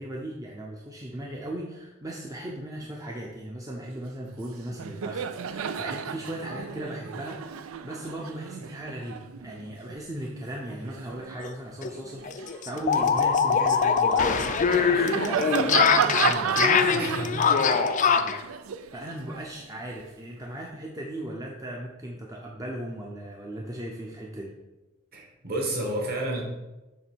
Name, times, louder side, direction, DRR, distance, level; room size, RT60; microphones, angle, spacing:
voice 1, 0.0-18.4 18.9-24.5, right 1 dB, 15° right, -2 dB, 0.6 m, -37 dB
Laughter, 4.3-4.5 4.7-11.4 11.9-20.1, right 7 dB, 85° right, 0.4 m, -33 dB
sound 1, 11.4-11.5 11.8-11.9 12.3-18.4, left 6 dB, 40° left, 0.4 m, -23 dB
voice 2, 16.9-17.4 25.1-26.4, right 1 dB, 45° right, 0 dB, 1.7 m, -30 dB
7.1 x 3.3 x 6.1 m, 1.0 s
head